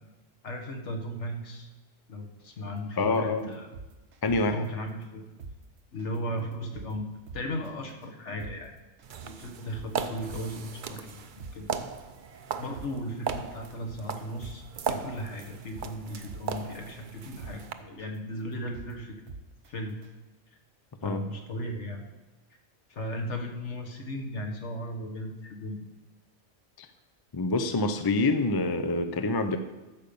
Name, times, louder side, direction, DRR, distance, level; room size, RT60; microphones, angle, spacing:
voice 1, 0.4-1.7 2.1-3.7 4.5-5.3 5.9-7.1 7.3-8.8 9.2-11.3 11.5-11.7 12.6-19.2 19.7-20.0 21.0-22.1 22.9-25.9, equal, 60° left, 3 dB, 1.7 m, -36 dB
voice 2, 3.0-3.4 4.2-4.6 21.0-21.2 26.8-26.9 27.3-29.6, left 3 dB, 35° left, 9 dB, 0.3 m, -26 dB
sound 1, 3.0-3.2 3.5-4.7 5.0-5.1 5.4-5.5 6.0-6.2 6.5-6.9 7.3-7.7 8.0-8.1 8.4-8.5 9.0-9.2 9.5-10.7 11.0-11.1 11.4-11.5 12.0-12.2 12.5-12.9 13.3-14.1 14.4-14.5 15.0-15.2 15.5-16.7 17.0-17.1 17.4-17.5 18.0-18.2 18.5-18.9 19.3-19.7 20.0-20.1, right 4 dB, 80° right, 1.3 m, -43 dB
sound 2, 9.0-17.7, right 6 dB, 50° right, 0.6 m, -37 dB
13.0 x 5.3 x 6.9 m, 1.1 s
omnidirectional pair, 1.4 m